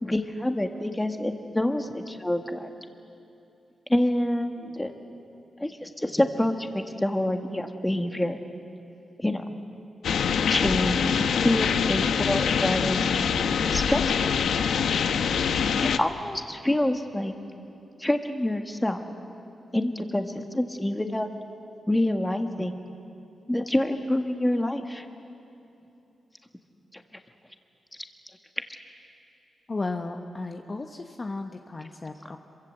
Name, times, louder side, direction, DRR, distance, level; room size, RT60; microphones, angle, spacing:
voice 1, 0.0-2.7 3.9-4.9 5.6-8.4 9.2-9.4 10.5-13.0 13.7-14.3 15.8-17.3 18.0-19.0 19.7-21.3 21.9-22.7 23.5-25.0 26.9-27.0, left 1 dB, 10° left, 5 dB, 1.7 m, -27 dB
sound 1, 10.0-16.0, left 7 dB, 90° left, 0.9 m, -24 dB
voice 2, 29.7-32.4, left 3 dB, 30° left, 4 dB, 1.1 m, -34 dB
26.5 x 24.0 x 7.8 m, 2.8 s
wide cardioid pair, 105°, 0 cm